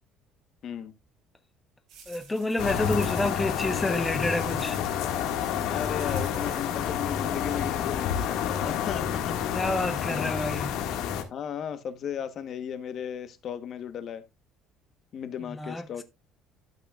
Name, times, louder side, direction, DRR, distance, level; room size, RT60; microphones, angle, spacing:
voice 1, 0.6-0.9 5.6-9.4 10.1-10.5 11.3-14.2 15.1-16.0, left 8 dB, 50° left, 1.2 m, -35 dB
sound 1, 1.9-6.7, right 5 dB, 55° right, 5.9 m, -50 dB
voice 2, 2.1-4.8 9.5-10.7 15.6-15.8, left 2 dB, 10° left, 0.8 m, -29 dB
sound 2, 2.6-11.2, left 8 dB, 75° left, 1.9 m, -29 dB
12.0 x 8.4 x 2.4 m
cardioid pair, 130°, 0 cm